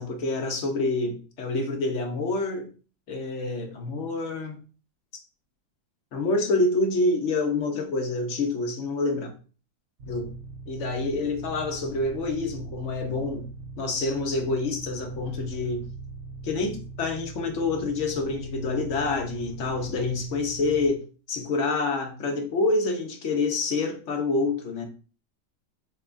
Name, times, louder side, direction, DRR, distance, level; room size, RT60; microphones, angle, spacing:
voice 1, 0.0-2.7 3.1-4.6 6.1-9.3 10.1-10.3 10.7-13.5 13.8-15.8 16.4-21.0 21.3-24.9, left 3 dB, 55° left, 0.8 m, -27 dB
sound 1, 10.0-20.9, right 3 dB, 60° right, 0.7 m, -41 dB
6.8 x 2.3 x 2.5 m
omnidirectional pair, 1.9 m